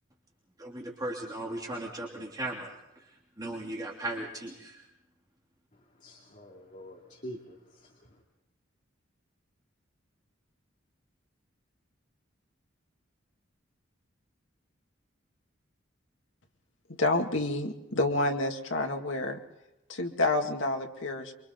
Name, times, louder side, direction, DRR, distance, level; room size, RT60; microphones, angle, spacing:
voice 1, 0.6-2.8 3.4-4.9, right 1 dB, 20° right, -2 dB, 3.1 m, -37 dB
voice 2, 6.0-8.2, equal, 40° left, 0 dB, 2.7 m, -46 dB
voice 3, 17.0-19.4 19.9-21.3, left 2 dB, 80° left, 2 dB, 2.2 m, -28 dB
29.0 x 24.0 x 3.9 m, 0.92 s
head